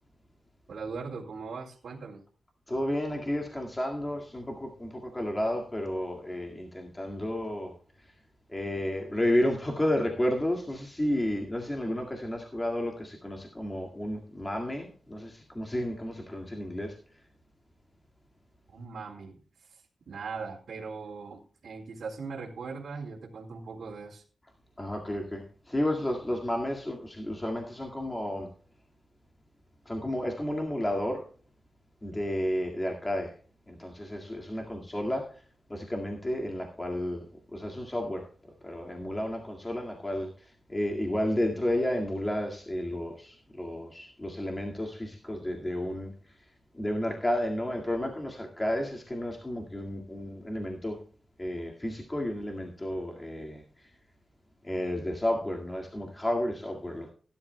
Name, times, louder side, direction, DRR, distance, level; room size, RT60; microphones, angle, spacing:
voice 1, 0.7-2.2 18.7-24.2, right 4 dB, 80° right, -4 dB, 2.5 m, -40 dB
voice 2, 2.7-8.1 8.5-17.0 24.8-28.5 29.9-31.2 32.0-33.3 33.7-35.4 35.7-38.3 38.6-46.5 46.7-51.0 51.4-53.9 54.6-57.1, left 1 dB, 15° left, 1 dB, 2.0 m, -32 dB
17.5 x 11.0 x 2.2 m, 0.41 s
wide cardioid pair, 115°, 0 cm